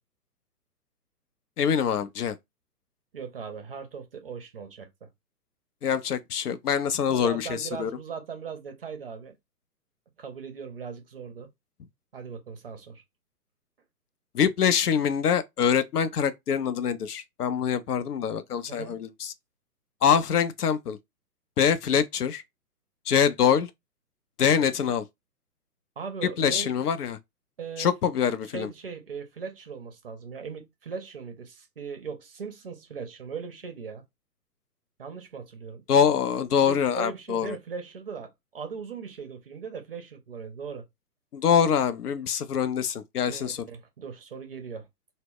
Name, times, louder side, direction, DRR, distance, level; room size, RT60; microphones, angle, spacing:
voice 1, 1.6-2.4 5.8-7.9 14.3-19.3 20.0-21.0 21.6-22.4 23.1-23.7 24.4-25.0 26.4-27.2 27.8-28.7 35.9-37.6 41.3-43.6, left 7 dB, 70° left, 0.5 m, -24 dB
voice 2, 3.1-5.1 7.1-9.4 10.2-11.5 12.1-13.0 18.7-19.0 26.0-26.8 27.6-27.9 28.5-34.0 35.0-35.8 36.6-40.8 43.3-44.9, right 6 dB, 40° right, 0.5 m, -39 dB
2.0 x 2.0 x 3.6 m
figure-of-eight pair, 125°, 48 cm